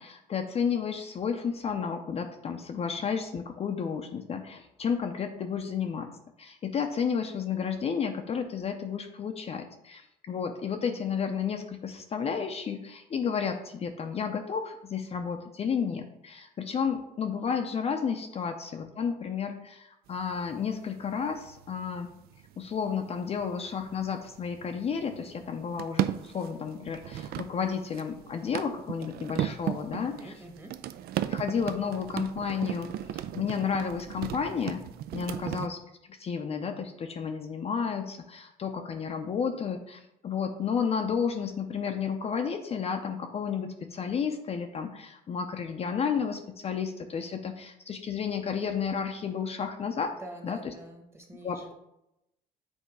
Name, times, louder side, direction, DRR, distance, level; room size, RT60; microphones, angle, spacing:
voice 1, 0.0-6.1 6.4-22.1 22.6-30.3 31.3-34.8 35.1-35.8 36.1-50.1 50.4-50.7 51.4-51.7, left 6 dB, 35° left, 5 dB, 0.5 m, -32 dB
sound 1, 20.1-35.7, right 11 dB, 65° right, 0.4 m, -37 dB
voice 2, 29.9-30.7 35.3-35.4 50.2-51.7, right 1 dB, 15° right, 2 dB, 1.2 m, -45 dB
7.9 x 2.8 x 4.7 m, 0.85 s
cardioid pair, 110°, 17 cm